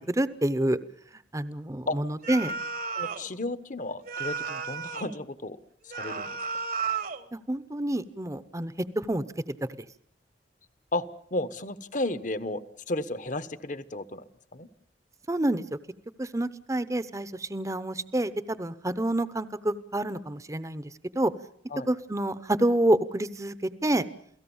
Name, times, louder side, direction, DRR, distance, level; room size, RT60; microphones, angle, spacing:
voice 1, 0.1-0.8 1.3-2.5 7.3-9.2 15.3-15.6 16.2-20.9 21.1-21.3 21.9-23.5 23.8-24.1, right 1 dB, 20° right, 14 dB, 0.9 m, -28 dB
sound 1, 2.2-3.3 4.1-5.2 5.9-7.3, right 5 dB, 55° right, 1.3 m, -33 dB
voice 2, 2.9-5.6 5.9-6.3 10.9-11.0 11.3-14.2 14.5-14.7 21.7-21.9, left 2 dB, 45° left, 13 dB, 1.2 m, -33 dB
29.0 x 17.5 x 7.2 m, 0.64 s
head